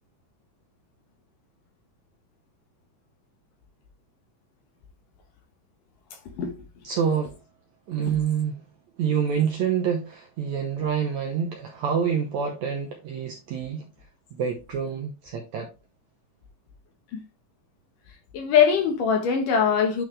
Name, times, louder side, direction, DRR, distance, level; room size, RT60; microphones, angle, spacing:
voice 1, 6.8-7.4 7.9-8.6 9.0-13.8 14.3-15.7, right 7 dB, 75° right, 1.7 m, -27 dB
voice 2, 18.3-20.0, left 7 dB, 65° left, 2.7 m, -22 dB
9.7 x 4.3 x 3.3 m
omnidirectional pair, 4.3 m